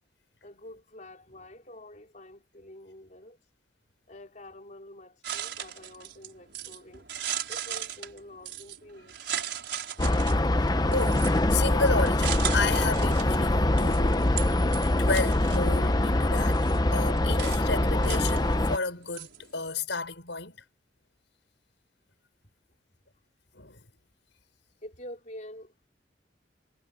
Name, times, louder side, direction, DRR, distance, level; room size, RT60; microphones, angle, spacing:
voice 1, 0.4-3.4 4.1-7.1 7.5-9.2 24.8-25.7, left 1 dB, 40° left, 4.4 m, -47 dB
sound 1, 5.2-19.7, right 10 dB, 65° right, 6.4 m, -38 dB
sound 2, 10.0-18.8, left 1 dB, 20° left, 0.8 m, -24 dB
voice 2, 10.6-20.6 23.5-23.9, left 3 dB, 75° left, 6.2 m, -32 dB
head